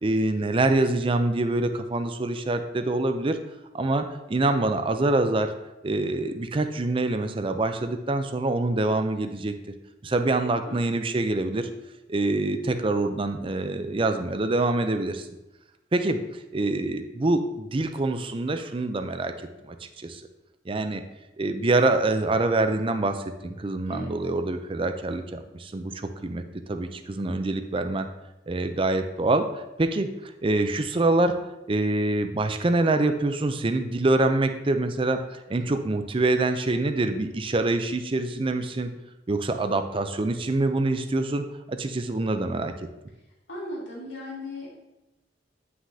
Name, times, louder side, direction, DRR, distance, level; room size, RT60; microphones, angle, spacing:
voice 1, 0.0-3.4 3.7-5.5 5.8-9.5 10.0-11.7 12.1-15.3 15.9-16.2 16.5-19.3 19.6-20.2 20.7-21.0 21.4-26.4 26.7-28.1 28.5-31.4 31.7-38.9 39.3-42.7, right 2 dB, 30° right, 8 dB, 0.5 m, -25 dB
voice 2, 10.6-11.0 23.9-24.1 43.5-44.7, left 1 dB, 75° left, -5 dB, 2.6 m, -37 dB
9.6 x 6.0 x 2.8 m, 0.98 s
head